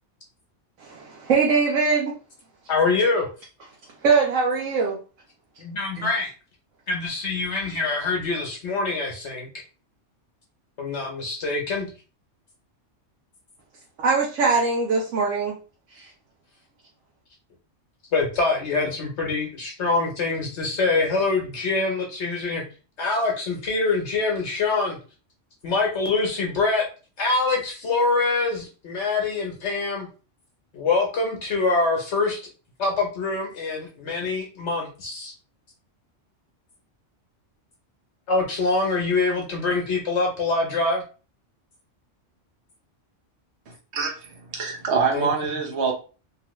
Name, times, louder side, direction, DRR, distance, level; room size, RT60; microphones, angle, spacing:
voice 1, 0.8-2.1 4.0-5.0 6.0-6.1 14.0-15.5 16.0-16.1, right 4 dB, 85° right, -2 dB, 1.1 m, -22 dB
voice 2, 2.7-3.3 5.6-6.3 6.9-9.5 10.8-11.9 18.1-22.6 23.0-25.0 25.6-26.9 27.2-30.1 30.7-32.4 32.8-35.3 38.3-41.0 45.1-45.3, left 3 dB, 65° left, 0 dB, 1.0 m, -24 dB
voice 3, 44.5-45.9, right 5 dB, 65° right, 1 dB, 1.1 m, -24 dB
2.9 x 2.5 x 3.0 m, 0.35 s
omnidirectional pair, 1.3 m